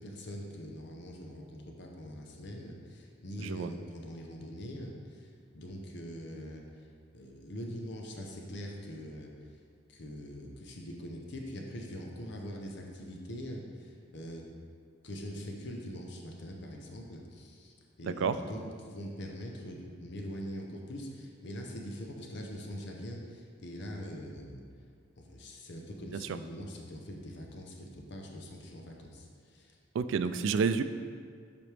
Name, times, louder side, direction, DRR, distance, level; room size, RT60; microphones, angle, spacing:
voice 1, 0.0-6.9 7.1-9.6 9.9-14.5 15.0-24.6 25.2-29.8, equal, 60° left, 0 dB, 0.8 m, -43 dB
voice 2, 3.4-3.7 18.0-18.4 26.3-26.4 29.9-30.8, right 5 dB, 70° right, 11 dB, 0.3 m, -29 dB
7.7 x 5.1 x 3.3 m, 2.1 s
head